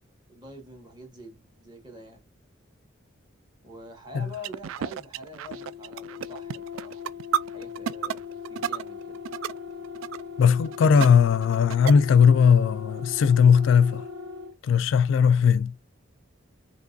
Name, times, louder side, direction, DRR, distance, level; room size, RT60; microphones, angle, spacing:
voice 1, 0.3-2.2 3.6-7.0 7.5-9.2, left 1 dB, 20° right, 1.6 m, -45 dB
sound 1, 4.3-9.6 9.8-10.2 10.6-11.1 11.3-12.3, right 9 dB, 85° right, 0.3 m, -31 dB
sound 2, 5.5-14.5, left 6 dB, 50° right, 1.7 m, -39 dB
voice 2, 10.4-14.0 14.6-15.7, left 6 dB, 70° left, 0.3 m, -18 dB
5.1 x 3.0 x 2.6 m
head